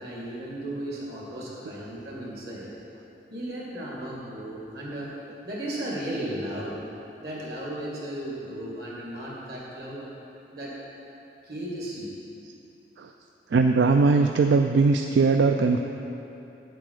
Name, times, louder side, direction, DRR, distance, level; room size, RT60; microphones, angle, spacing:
voice 1, 0.0-2.7 3.3-5.1 5.4-6.8 7.2-10.0 10.5-10.7 11.4-12.1, right 1 dB, 60° right, -5 dB, 2.3 m, -35 dB
voice 2, 13.5-15.8, right 4 dB, 80° right, 5 dB, 0.4 m, -20 dB
8.5 x 7.8 x 4.8 m, 2.8 s
head